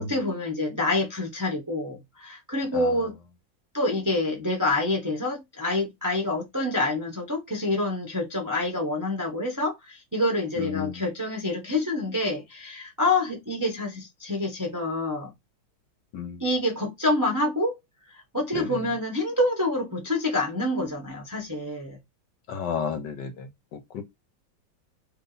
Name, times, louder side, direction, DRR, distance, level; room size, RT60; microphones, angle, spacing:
voice 1, 0.0-3.2 3.7-15.3 16.4-17.8 18.1-22.0, left 2 dB, 20° right, 0.5 m, -27 dB
voice 2, 10.6-11.0 16.1-16.4 18.5-18.8 22.5-24.0, left 6 dB, 70° left, 1.3 m, -33 dB
3.2 x 2.6 x 3.9 m
omnidirectional pair, 2.1 m